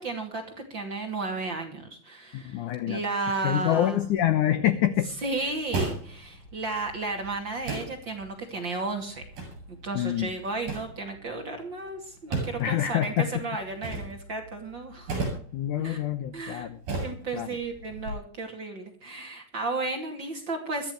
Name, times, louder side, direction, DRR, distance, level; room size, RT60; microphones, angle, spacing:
voice 1, 0.0-4.1 5.1-9.2 9.7-15.2 15.8-16.0 16.3-16.7 17.0-20.9, right 3 dB, 35° right, 3 dB, 2.6 m, -33 dB
voice 2, 2.3-3.0 3.4-5.1 9.9-10.3 12.6-13.4 15.5-16.7 16.9-17.0 17.3-17.5, left 11 dB, 85° left, 11 dB, 1.7 m, -26 dB
sound 1, 4.0-18.1, right 3 dB, 55° right, 9.4 m, -38 dB
22.5 x 13.5 x 3.1 m, 0.43 s
omnidirectional pair, 4.9 m